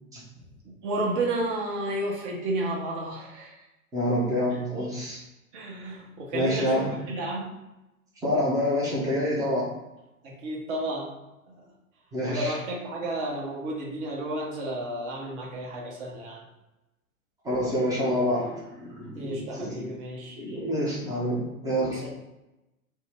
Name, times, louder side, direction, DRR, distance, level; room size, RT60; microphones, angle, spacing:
voice 1, 0.4-3.5 5.5-7.5 10.2-11.1 11.5-11.6 12.3-16.4 19.1-20.4 21.8-22.1, right 1 dB, 35° right, -2 dB, 0.9 m, -32 dB
voice 2, 3.9-5.2 6.3-7.1 8.2-9.7 12.1-12.6 17.4-19.9 20.4-22.1, equal, 10° right, -6 dB, 0.6 m, -27 dB
2.6 x 2.0 x 3.3 m, 0.97 s
figure-of-eight pair, 100°, 42 cm